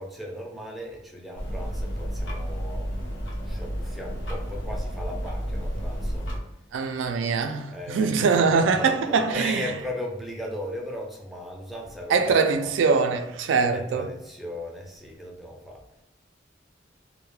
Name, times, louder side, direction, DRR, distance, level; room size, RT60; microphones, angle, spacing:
voice 1, 0.0-2.9 3.4-6.3 7.0-7.1 7.7-12.8 13.7-16.0, left 1 dB, ahead, 0.4 m, -37 dB
sound 1, 1.4-6.4, equal, 90° left, 0.7 m, -31 dB
voice 2, 6.7-9.7 12.1-14.1, right 5 dB, 90° right, 0.3 m, -23 dB
2.2 x 2.1 x 3.0 m
head